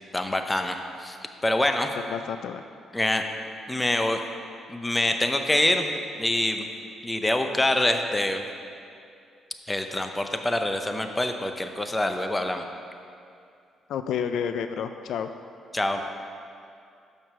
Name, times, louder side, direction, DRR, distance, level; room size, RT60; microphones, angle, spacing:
voice 1, 0.1-1.2 1.4-1.9 2.9-3.2 3.7-4.2 4.7-6.7 7.0-8.4 9.7-12.6 15.7-16.0, left 1 dB, 15° left, 6 dB, 0.6 m, -25 dB
voice 2, 2.0-2.6 13.9-15.3, left 7 dB, 75° left, 9 dB, 0.3 m, -30 dB
6.5 x 6.1 x 6.0 m, 2.4 s
cardioid pair, 90°, 0 cm